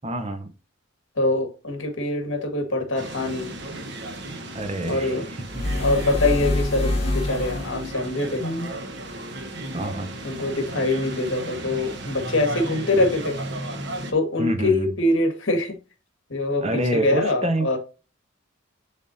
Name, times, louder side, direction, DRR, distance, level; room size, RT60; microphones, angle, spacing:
voice 1, 0.0-0.5 4.5-5.6 9.7-10.1 12.9-13.1 14.4-14.9 16.6-17.8, right 1 dB, 30° right, 0.7 m, -27 dB
voice 2, 1.2-3.5 4.9-5.3 5.8-8.7 10.2-13.4 14.1-15.8 16.3-17.8, left 2 dB, 65° left, 1.7 m, -24 dB
sound 1, 3.0-14.1, right 1 dB, 60° right, 1.1 m, -35 dB
sound 2, 5.5-7.9, left 1 dB, 30° left, 1.6 m, -25 dB
10.5 x 3.6 x 2.6 m
head